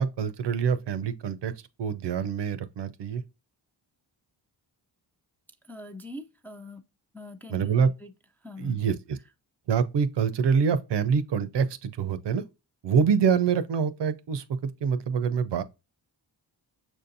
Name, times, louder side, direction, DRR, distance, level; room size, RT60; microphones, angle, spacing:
voice 1, 0.0-1.5 1.8-3.2 7.5-7.9 8.6-9.2 9.7-12.4 12.8-15.6, right 6 dB, 60° right, 0.6 m, -25 dB
voice 2, 5.6-6.9 7.1-8.1 8.4-8.8, left 2 dB, 5° left, 0.4 m, -43 dB
6.2 x 2.6 x 2.6 m
cardioid pair, 55°, 47 cm